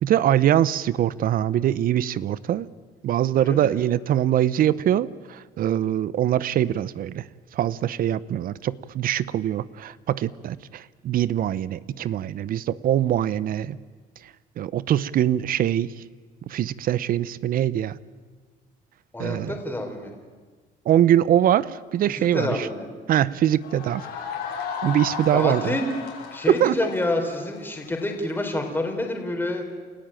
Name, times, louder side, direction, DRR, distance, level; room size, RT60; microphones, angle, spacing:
voice 1, 0.0-2.7 3.0-7.2 7.5-13.8 14.6-15.9 16.5-18.0 19.2-19.6 20.9-22.7 23.1-24.1 24.8-25.8 26.6-26.7, right 11 dB, 60° right, 19 dB, 0.7 m, -23 dB
voice 2, 3.4-3.8 19.1-20.1 22.1-22.9 25.3-25.9 26.3-29.6, left 1 dB, 10° left, 2 dB, 4.0 m, -28 dB
sound 1, 23.6-28.3, left 6 dB, 85° left, 5.9 m, -34 dB
29.5 x 14.0 x 9.0 m, 1.4 s
cardioid pair, 110°, 17 cm